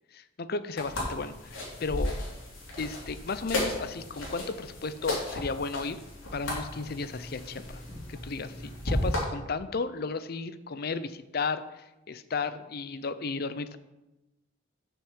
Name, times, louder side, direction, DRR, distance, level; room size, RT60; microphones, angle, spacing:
voice 1, 0.1-2.2 2.8-6.0 6.3-7.8 8.1-13.8, left 4 dB, 50° left, 13 dB, 0.5 m, -34 dB
sound 1, 0.8-9.2, left 1 dB, 90° left, 3.0 m, -34 dB
6.9 x 6.0 x 7.3 m, 1.0 s
head